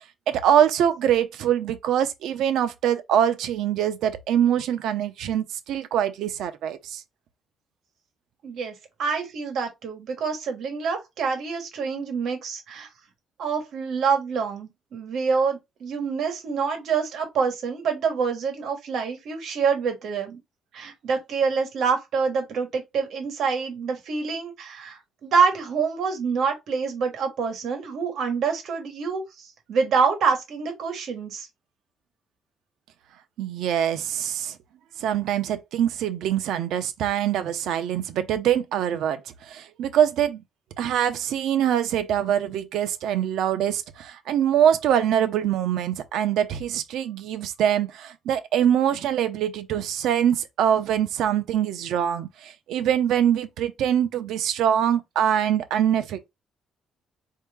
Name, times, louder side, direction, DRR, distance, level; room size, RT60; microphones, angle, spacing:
voice 1, 0.3-7.0 33.4-34.6 35.0-40.4 40.8-56.3, right 9 dB, 85° right, 0.6 m, -24 dB
voice 2, 8.4-8.7 9.0-12.9 13.4-20.4 20.7-31.5, right 5 dB, 60° right, 1.3 m, -26 dB
4.6 x 2.8 x 3.4 m
cardioid pair, 175°, 0 cm